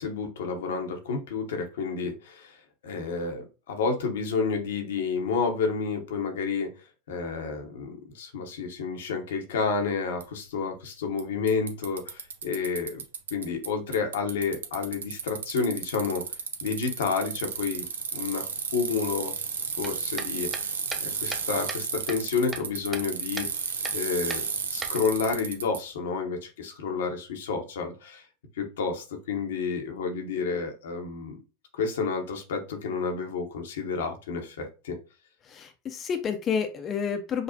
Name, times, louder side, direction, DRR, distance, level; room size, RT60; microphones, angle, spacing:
voice 1, 0.0-6.7 7.1-13.0 13.3-17.9 18.1-18.5 18.7-19.3 19.8-20.7 21.0-23.5 23.9-24.4 24.7-28.3 28.6-31.4 31.8-35.0, left 5 dB, 80° left, 4 dB, 0.9 m, -30 dB
Bicycle, 10.2-10.3 11.2-11.3 11.5-13.7 13.9-25.8, right 6 dB, 85° right, 0.5 m, -33 dB
sound 1, 19.8-21.8 22.1-23.1 23.4-23.5 23.8-24.0 24.3-25.3, right 3 dB, 15° right, 0.7 m, -37 dB
voice 2, 35.5-37.4, left 6 dB, 35° left, 6 dB, 0.5 m, -30 dB
5.1 x 2.0 x 2.8 m, 0.31 s
hypercardioid pair, 95°, 0 cm